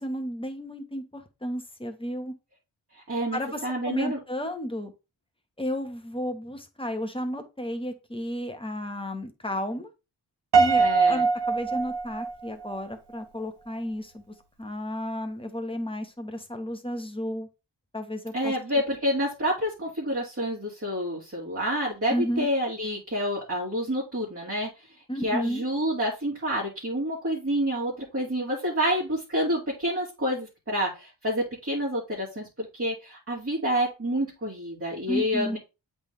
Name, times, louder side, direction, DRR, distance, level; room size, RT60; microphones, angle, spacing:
voice 1, 0.0-2.3 3.3-4.9 5.6-9.9 10.6-17.5 17.9-18.5 22.1-22.5 25.1-25.6 35.1-35.6, equal, 10° left, 6 dB, 1.2 m, -32 dB
voice 2, 3.1-4.2 10.8-11.2 18.3-24.7 25.2-35.6, equal, 30° right, -5 dB, 2.2 m, -28 dB
Piano, 10.5-12.8, right 4 dB, 60° right, 1.3 m, -22 dB
8.0 x 3.6 x 3.3 m, 0.28 s
wide cardioid pair, 75°, 45 cm